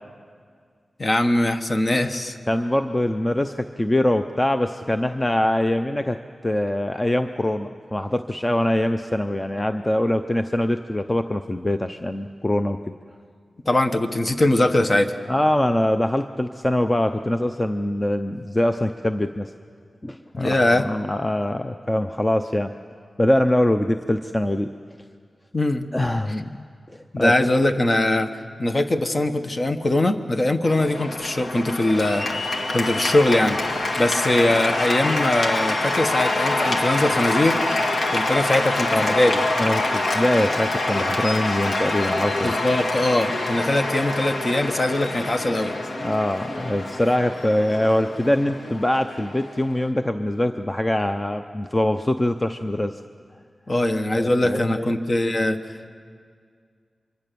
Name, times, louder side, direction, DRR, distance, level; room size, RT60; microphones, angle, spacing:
voice 1, 1.0-2.4 13.6-15.2 20.3-20.9 25.5-25.9 27.1-28.3 28.6-33.6 34.0-37.6 38.1-39.4 42.4-45.7 53.7-56.0, left 1 dB, 45° left, 7 dB, 1.4 m, -21 dB
voice 2, 2.5-6.2 6.4-12.8 15.3-19.5 20.0-22.7 23.2-24.7 25.9-26.6 26.9-27.3 38.9-39.1 39.6-42.6 46.0-52.9 54.1-54.9, left 1 dB, 20° left, 8 dB, 0.7 m, -23 dB
Cheering / Applause, 30.6-49.9, left 2 dB, 70° left, 2.1 m, -26 dB
24.5 x 24.0 x 7.0 m, 2.1 s
cardioid pair, 60°, 0 cm